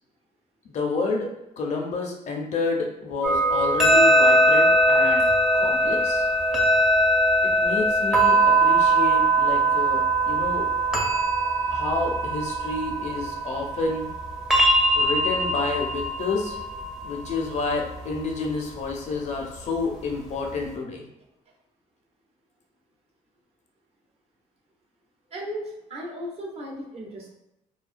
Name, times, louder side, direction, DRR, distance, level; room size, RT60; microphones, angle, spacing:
voice 1, 0.6-1.3 1.6-5.2 5.5-6.2 7.4-10.7 11.7-14.1 15.0-16.6 17.0-21.0, left 3 dB, 55° left, 1 dB, 0.5 m, -29 dB
sound 1, 3.2-18.9, right 1 dB, 5° right, 0.5 m, -21 dB
voice 2, 25.3-27.3, equal, 45° right, -2 dB, 0.6 m, -36 dB
2.3 x 2.2 x 2.4 m, 0.87 s
cardioid pair, 120°, 14 cm